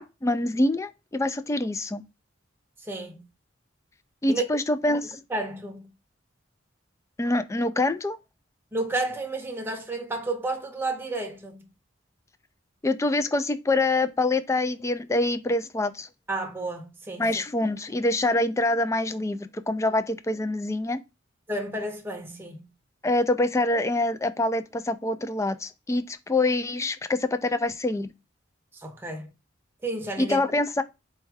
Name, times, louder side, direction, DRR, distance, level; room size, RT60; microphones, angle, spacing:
voice 1, 0.0-2.0 4.2-5.2 7.2-8.2 12.8-16.1 17.2-21.0 23.0-28.1 30.2-30.8, left 2 dB, 15° left, 0.3 m, -25 dB
voice 2, 2.8-3.2 4.3-4.5 5.3-5.9 8.7-11.7 16.3-17.3 21.5-22.7 28.7-29.3 29.8-30.4, right 2 dB, 10° right, 0.7 m, -31 dB
4.3 x 2.3 x 4.7 m
head